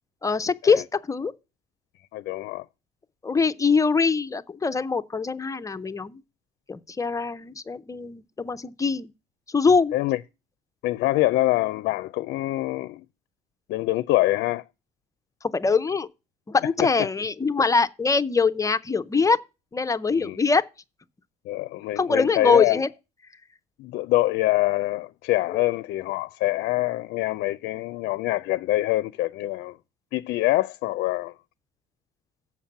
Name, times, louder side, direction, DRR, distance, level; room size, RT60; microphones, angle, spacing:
voice 1, 0.2-1.3 3.2-6.2 6.7-9.1 9.5-9.9 15.4-16.1 16.5-19.4 19.7-20.6 22.0-22.9, left 4 dB, 20° left, 0.5 m, -23 dB
voice 2, 2.1-2.6 9.9-10.2 10.8-13.0 13.7-14.6 20.2-20.4 21.5-22.8 23.8-29.8 30.1-31.3, left 17 dB, 80° left, 0.4 m, -25 dB
7.3 x 5.9 x 7.1 m
cardioid pair, 110°, 17 cm